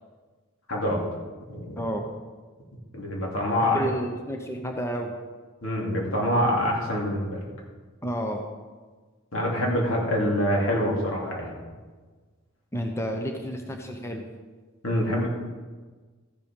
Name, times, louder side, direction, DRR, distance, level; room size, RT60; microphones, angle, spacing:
voice 1, 0.7-1.0 1.5-1.8 2.9-3.8 5.6-7.4 9.3-11.5 14.8-15.3, equal, 75° left, -2 dB, 3.0 m, -25 dB
voice 2, 3.6-5.1 8.0-8.5 12.7-14.3, equal, 15° left, 3 dB, 0.9 m, -31 dB
13.5 x 7.5 x 5.4 m, 1.4 s
head